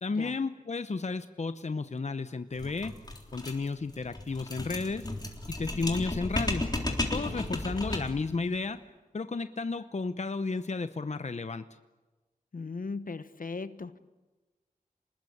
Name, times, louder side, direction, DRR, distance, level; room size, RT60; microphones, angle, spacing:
voice 1, 0.0-2.9 3.3-5.1 5.5-6.6 7.1-8.8 9.1-11.6, left 3 dB, 50° left, 10 dB, 0.8 m, -33 dB
sound 1, 2.6-8.3, left 1 dB, 25° left, 3.6 m, -34 dB
voice 2, 12.5-14.0, left 4 dB, 70° left, 12 dB, 1.1 m, -38 dB
27.0 x 20.5 x 8.6 m, 1.2 s
wide cardioid pair, 70°, 15 cm